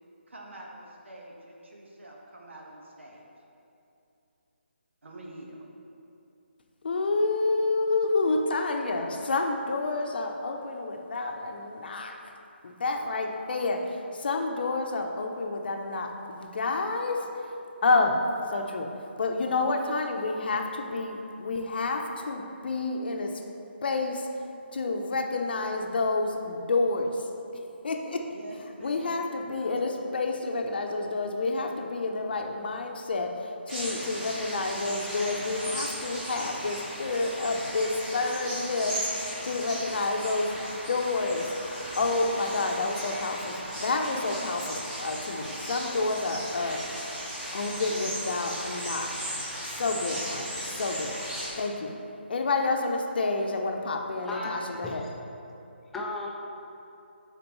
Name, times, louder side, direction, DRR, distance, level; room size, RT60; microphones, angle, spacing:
voice 1, 0.3-3.2 5.0-5.7 28.3-29.2 29.7-30.3 31.6-31.9, right 1 dB, 90° right, -2 dB, 1.3 m, -46 dB
voice 2, 6.8-12.2 12.6-17.3 17.8-18.2 18.5-18.9 19.2-23.4 23.8-24.3 24.7-27.2 27.8-28.3 28.8-40.6 40.9-41.5 42.0-46.8 47.5-49.1 49.7-51.2 51.6-51.9 52.3-55.0, left 3 dB, 55° left, 3 dB, 0.7 m, -29 dB
sound 1, 33.7-51.5, equal, 15° right, 1.3 m, -36 dB
voice 3, 55.9-56.3, left 2 dB, 5° left, -4 dB, 0.4 m, -34 dB
10.5 x 4.3 x 3.1 m, 2.7 s
hypercardioid pair, 165°, 6 cm